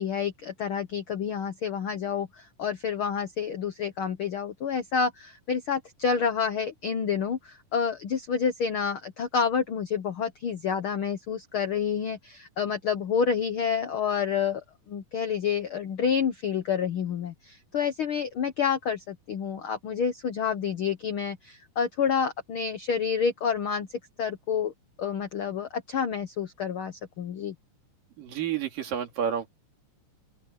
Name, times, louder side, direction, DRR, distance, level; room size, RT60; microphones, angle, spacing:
voice 1, 0.0-14.6 14.9-24.7 25.0-27.5, left 6 dB, 70° left, 1.2 m, -29 dB
voice 2, 28.2-29.5, right 8 dB, 85° right, 4.4 m, -30 dB
omnidirectional pair, 3.8 m